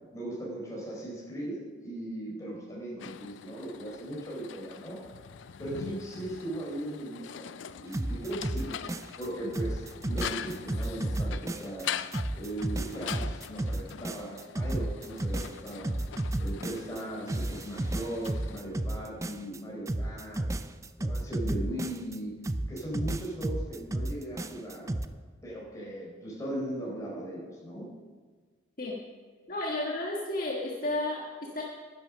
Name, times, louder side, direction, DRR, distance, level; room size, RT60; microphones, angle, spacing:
voice 1, 0.1-5.0 5.6-8.8 9.2-11.9 12.3-15.9 16.4-20.4 21.0-22.4 22.7-24.9 25.4-27.9, right 1 dB, 15° left, -5 dB, 4.3 m, -38 dB
sound 1, 3.0-18.6, left 8 dB, 80° left, 0.4 m, -43 dB
sound 2, 7.9-9.3 9.5-11.8 12.1-17.0 17.3-19.6 19.9-22.2 22.4-25.1, right 1 dB, 15° right, 0.4 m, -32 dB
voice 2, 29.5-31.6, left 2 dB, 45° left, -2 dB, 1.5 m, -32 dB
11.0 x 10.5 x 6.2 m, 1.5 s
head